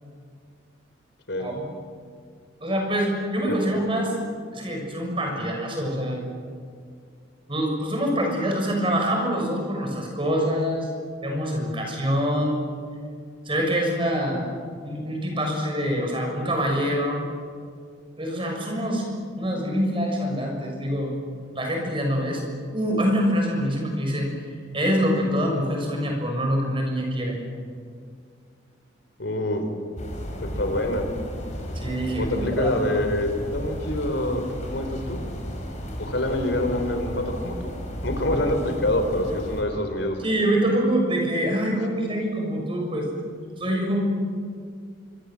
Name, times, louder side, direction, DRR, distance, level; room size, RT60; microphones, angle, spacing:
voice 1, 2.6-4.1 4.5-6.2 7.5-10.9 11.2-12.6 13.4-14.5 14.8-17.2 18.2-19.1 19.4-21.1 21.5-22.4 22.7-24.3 24.7-27.4 31.7-32.7 40.2-43.1 43.6-44.1, equal, 25° right, 1 dB, 6.6 m, -25 dB
voice 2, 29.2-29.6 30.4-31.1 32.2-35.2 36.0-37.7 38.0-40.5, left 1 dB, 65° left, 6 dB, 4.0 m, -26 dB
sound 1, 30.0-39.6, equal, 40° left, 4.8 m, -34 dB
26.0 x 24.5 x 7.7 m, 2.2 s
head